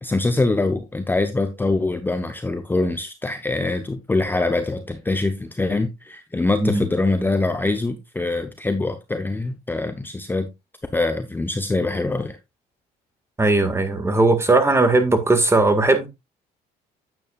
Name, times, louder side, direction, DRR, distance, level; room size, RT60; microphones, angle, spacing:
voice 1, 0.0-10.5 10.9-12.4, left 2 dB, 10° left, 0.8 m, -24 dB
voice 2, 13.4-16.1, right 2 dB, 15° right, 1.7 m, -18 dB
9.4 x 8.3 x 2.4 m
cardioid pair, 110°, 17 cm